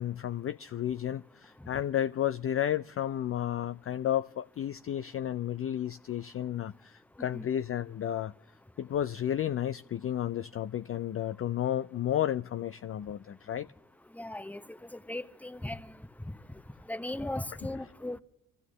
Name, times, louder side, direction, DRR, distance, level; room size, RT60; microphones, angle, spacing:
voice 1, 0.0-8.3 8.8-13.7, left 11 dB, 35° left, 0.4 m, -32 dB
voice 2, 14.1-15.9 16.9-18.2, left 1 dB, 5° left, 0.9 m, -37 dB
25.0 x 14.0 x 3.2 m
hypercardioid pair, 45°, 42 cm